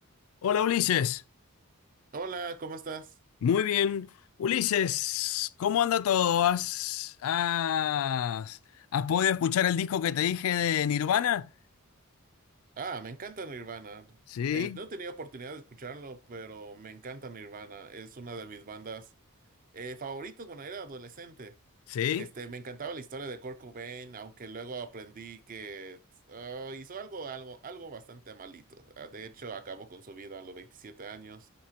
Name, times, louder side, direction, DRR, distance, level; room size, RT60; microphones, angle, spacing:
voice 1, 0.4-1.2 3.4-4.1 4.4-8.6 8.9-11.5 14.3-14.8 21.9-22.3, left 9 dB, 70° left, 0.3 m, -27 dB
voice 2, 2.1-3.1 12.8-14.2 14.5-19.1 19.7-21.5 22.2-26.0 26.3-31.5, right 4 dB, 40° right, 0.5 m, -41 dB
9.7 x 3.7 x 2.8 m
head